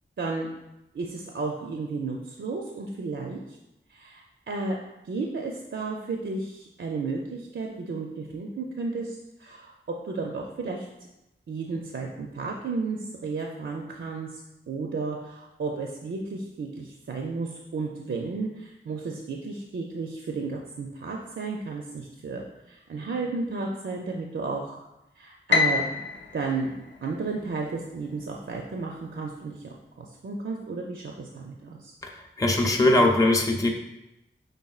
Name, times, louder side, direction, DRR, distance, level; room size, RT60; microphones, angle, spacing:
voice 1, 0.2-0.5 0.9-3.4 3.9-4.8 5.0-9.7 10.0-10.9 11.5-14.4 14.7-22.4 22.7-24.8 25.2-26.0 26.3-26.7 27.0-31.9, right 3 dB, 70° right, 0 dB, 0.5 m, -33 dB
Piano, 25.5-27.8, left 5 dB, 65° left, 0.5 m, -27 dB
voice 2, 32.0-33.7, left 2 dB, 15° left, 1 dB, 0.5 m, -21 dB
5.4 x 3.4 x 2.4 m, 0.93 s
wide cardioid pair, 60°, 21 cm